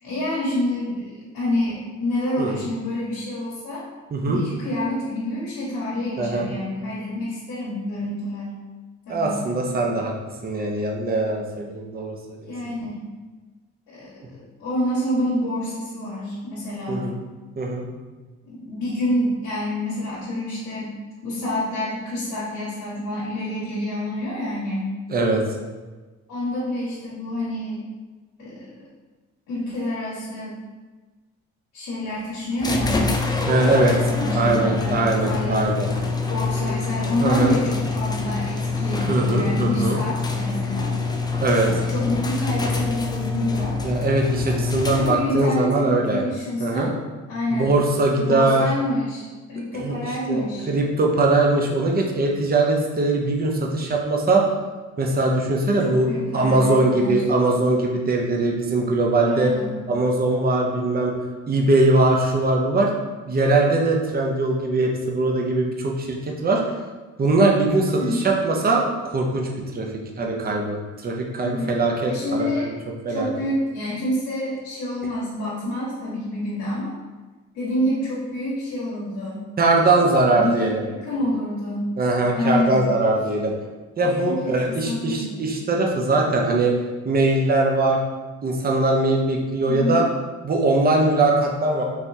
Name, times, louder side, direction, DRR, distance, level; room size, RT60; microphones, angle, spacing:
voice 1, 0.0-3.8 4.3-8.6 9.1-9.5 12.4-13.1 13.9-17.1 18.5-20.9 21.2-24.9 26.3-27.8 28.4-28.7 29.5-30.5 31.7-33.0 33.7-35.7 36.3-40.9 41.9-43.7 44.6-46.9 47.3-47.7 48.2-50.7 55.8-57.2 59.2-59.7 68.0-68.3 71.4-71.8 72.1-72.7 73.1-76.9 77.5-79.4 79.8-81.9 82.3-82.9 84.0-85.4 89.7-90.0, left 1 dB, 85° left, -7 dB, 1.3 m, -28 dB
voice 2, 4.1-4.4 6.2-6.5 9.1-10.1 10.4-12.2 12.4-12.5 16.9-17.1 17.6-17.9 25.1-25.4 33.5-33.9 34.3-35.9 37.2-37.5 39.1-40.0 41.4-41.7 43.8-46.2 46.6-46.9 47.5-48.7 49.7-49.9 50.3-50.4 50.7-54.4 55.0-56.1 56.3-59.5 59.9-61.1 61.5-62.9 63.3-66.6 67.2-68.9 69.1-69.9 70.2-72.5 73.1-73.3 79.6-80.8 82.0-83.5 84.0-86.7 87.0-88.0 88.4-90.1 90.4-91.8, right 2 dB, 30° right, 0 dB, 0.7 m, -21 dB
sound 1, 32.6-45.4, left 4 dB, 15° left, 0.3 m, -25 dB
3.9 x 2.9 x 2.6 m, 1.3 s
cardioid pair, 90°, 30 cm